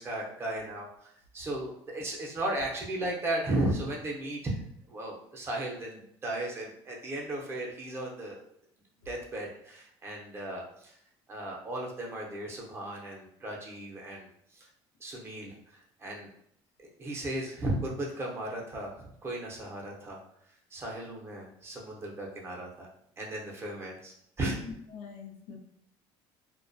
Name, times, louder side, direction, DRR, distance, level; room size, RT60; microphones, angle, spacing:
voice 1, 0.0-4.6 4.9-8.4 9.1-11.0 11.3-14.7 15.0-16.3 17.0-20.2 20.7-22.9 23.2-24.6, right 1 dB, 25° right, -2 dB, 0.6 m, -35 dB
voice 2, 24.6-25.6, left 5 dB, 80° left, 2 dB, 0.5 m, -43 dB
2.3 x 2.1 x 2.5 m, 0.70 s
cardioid pair, 130°, 10 cm